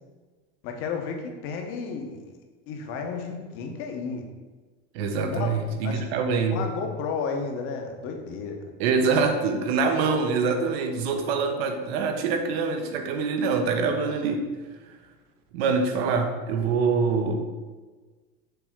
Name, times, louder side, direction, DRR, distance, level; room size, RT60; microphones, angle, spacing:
voice 1, 0.6-2.2 2.7-4.3 5.3-5.5 5.8-6.0 6.5-8.6, left 5 dB, 40° left, 3 dB, 1.0 m, -32 dB
voice 2, 4.9-6.7 8.8-14.5 15.5-17.4, right 4 dB, 65° right, 6 dB, 1.0 m, -25 dB
6.9 x 3.4 x 6.0 m, 1.3 s
supercardioid pair, 165°, 33 cm